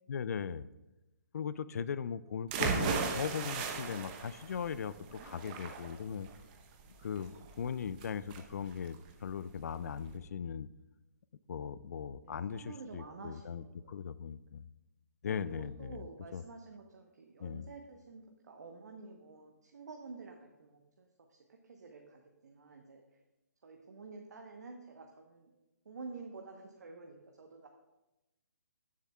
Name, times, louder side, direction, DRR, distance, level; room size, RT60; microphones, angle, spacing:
voice 1, 0.1-0.7 1.3-6.3 7.0-10.7 11.5-14.7 15.2-16.0 16.3-16.4 17.4-17.7, left 7 dB, 60° left, 16 dB, 0.4 m, -39 dB
sound 1, 2.5-10.2, right 5 dB, 30° right, 0.8 m, -37 dB
voice 2, 12.2-14.0 15.4-23.0 23.6-25.5 25.8-27.7, right 4 dB, 70° right, 2 dB, 0.9 m, -50 dB
13.0 x 7.4 x 2.3 m, 1.0 s
hypercardioid pair, 145°, 9 cm